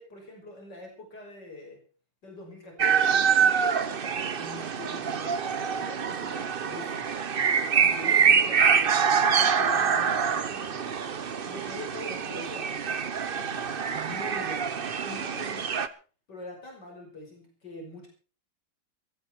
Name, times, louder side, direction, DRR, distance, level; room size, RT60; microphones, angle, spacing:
voice 1, 0.0-1.8 2.2-7.1 7.7-11.0 11.4-13.0 13.3-14.8 15.0-15.7 16.3-18.1, left 1 dB, 85° left, 1 dB, 6.6 m, -43 dB
sound 1, 2.8-15.9, right 6 dB, 40° right, 0.9 m, -25 dB
18.0 x 15.0 x 4.7 m, 0.39 s
omnidirectional pair, 1.8 m